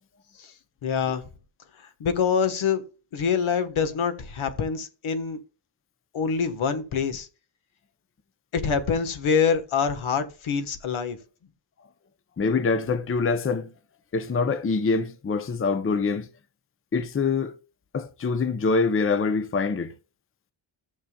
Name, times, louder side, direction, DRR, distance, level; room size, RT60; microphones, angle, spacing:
voice 1, 0.8-1.2 2.0-2.8 3.1-5.4 6.1-7.3 8.5-11.2, left 6 dB, 80° left, 1.4 m, -25 dB
voice 2, 12.4-13.7 14.1-16.3 16.9-17.5 17.9-19.9, left 4 dB, 30° left, 0.6 m, -24 dB
14.5 x 6.9 x 2.3 m
wide cardioid pair, 170°, 48 cm